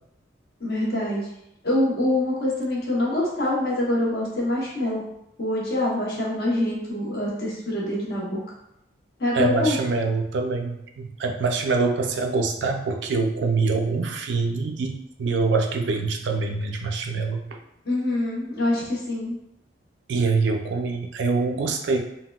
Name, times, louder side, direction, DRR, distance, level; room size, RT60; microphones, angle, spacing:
voice 1, 0.6-1.3 1.6-5.0 5.4-8.4 9.2-9.8 17.8-19.4, left 1 dB, 55° left, -5 dB, 0.9 m, -25 dB
voice 2, 9.3-17.6 20.1-22.0, right 4 dB, 70° right, 4 dB, 0.4 m, -25 dB
3.6 x 2.1 x 2.3 m, 0.81 s
head